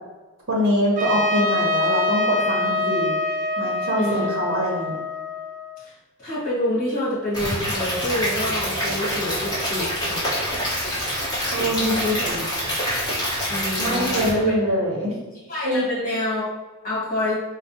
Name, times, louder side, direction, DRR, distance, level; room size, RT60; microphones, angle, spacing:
voice 1, 0.5-3.2 3.6-4.9 11.5-12.4 13.8-15.1 15.6-15.9, equal, 60° right, -4 dB, 0.8 m, -24 dB
Trumpet, 1.0-5.8, left 2 dB, 35° right, 0.4 m, -24 dB
voice 2, 4.0-4.3 5.8-5.9 6.2-10.3 12.0-12.4 13.5-14.6 15.5-16.5 16.8-17.4, left 1 dB, 40° left, -7 dB, 1.4 m, -27 dB
Stream / Liquid, 7.3-14.3, equal, 20° left, 1.0 m, -26 dB
4.5 x 2.1 x 2.7 m, 1.2 s
head